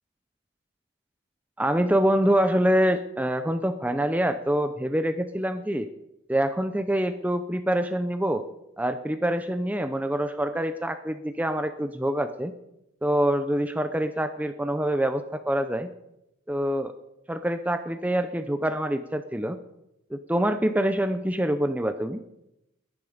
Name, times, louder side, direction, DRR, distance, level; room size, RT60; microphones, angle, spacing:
voice 1, 1.6-5.9 6.3-8.4 8.8-12.5 13.0-15.9 16.5-16.9 17.3-19.6 20.1-22.2, right 1 dB, 10° right, 9 dB, 0.6 m, -25 dB
20.0 x 11.0 x 5.0 m, 0.87 s
head